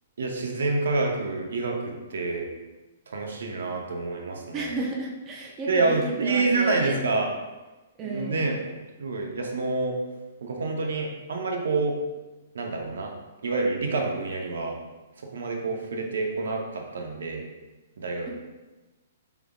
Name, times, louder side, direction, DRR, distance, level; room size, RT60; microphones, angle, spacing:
voice 1, 0.2-2.5 3.1-4.7 5.7-7.3 8.0-8.6 9.0-10.0 10.4-12.0 12.5-13.1 13.4-14.8 15.3-17.4 18.0-18.3, right 3 dB, 85° right, 1 dB, 0.8 m, -27 dB
voice 2, 4.5-7.1 8.0-8.4, right 2 dB, 15° right, -2 dB, 0.4 m, -32 dB
4.9 x 3.5 x 2.4 m, 1.1 s
hypercardioid pair, 175°, 0 cm